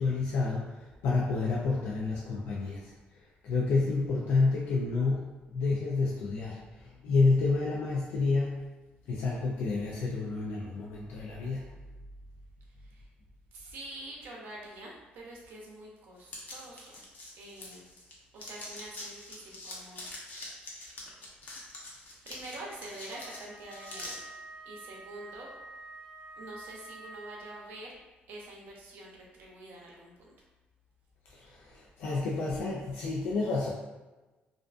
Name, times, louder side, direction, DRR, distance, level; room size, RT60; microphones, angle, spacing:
voice 1, 0.0-2.9 3.4-8.6 9.1-11.7 31.3-33.7, left 3 dB, 85° left, -4 dB, 0.4 m, -29 dB
voice 2, 12.8-13.1 13.5-17.0 17.4-17.9 18.3-20.1 22.1-24.2 24.7-25.5 26.4-28.0 28.3-30.3, right 1 dB, 75° right, -2 dB, 0.6 m, -46 dB
sound 1, 16.3-18.1 18.4-24.2, left 2 dB, 50° left, 0.7 m, -44 dB
Wind instrument woodwind instrument, 23.1-28.0, right 2 dB, 20° right, 0.6 m, -48 dB
2.4 x 2.3 x 2.4 m, 1.1 s
cardioid pair, 100°, 4 cm